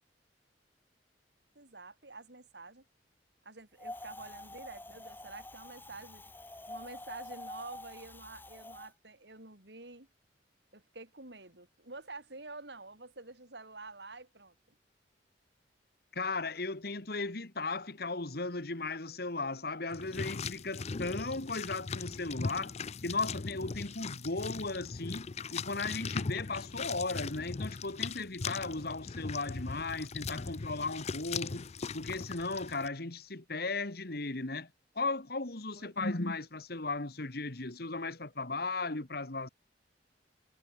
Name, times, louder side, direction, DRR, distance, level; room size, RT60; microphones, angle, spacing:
voice 1, 1.5-2.8 3.4-6.3 6.7-10.1 10.7-14.5 35.8-35.9, right 3 dB, 70° right, 4.2 m, -48 dB
Wind, 3.8-8.9, left 1 dB, 10° left, 3.4 m, -47 dB
voice 2, 16.1-22.8 23.0-31.7 31.9-34.7 35.0-39.5, left 3 dB, 60° left, 1.9 m, -36 dB
sound 1, 19.9-32.9, left 4 dB, 35° left, 0.5 m, -39 dB
head